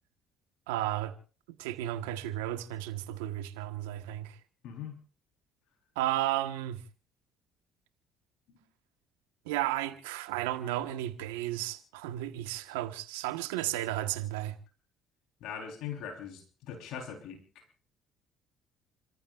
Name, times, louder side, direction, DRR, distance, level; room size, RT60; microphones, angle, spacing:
voice 1, 0.7-1.1 1.6-4.3 6.0-6.8 9.5-14.5, right 14 dB, 85° right, 1.4 m, -33 dB
voice 2, 4.6-5.0 15.4-17.6, left 8 dB, 75° left, 4.0 m, -41 dB
30.0 x 14.5 x 2.5 m
hypercardioid pair, 60°, 0 cm